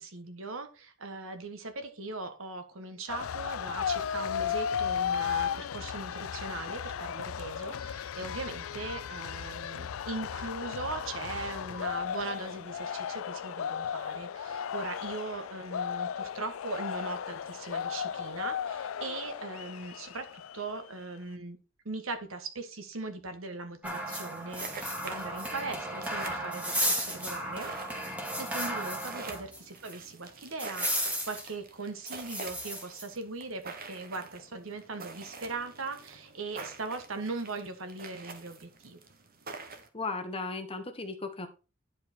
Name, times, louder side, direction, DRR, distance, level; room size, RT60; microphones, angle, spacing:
voice 1, 0.0-21.6 21.8-27.7 28.4-39.0, right 3 dB, 75° right, 8 dB, 1.4 m, -39 dB
sound 1, 3.1-20.9, left 8 dB, 80° left, 0.4 m, -35 dB
sound 2, 23.8-29.6 29.9-30.0 30.6-31.5 32.1-33.1, equal, 5° right, 2.0 m, -34 dB
sound 3, 24.6-39.9, right 4 dB, 45° right, 1.3 m, -47 dB
voice 2, 39.9-41.5, left 3 dB, 30° left, 5 dB, 1.3 m, -36 dB
10.5 x 4.8 x 4.4 m, 0.32 s
head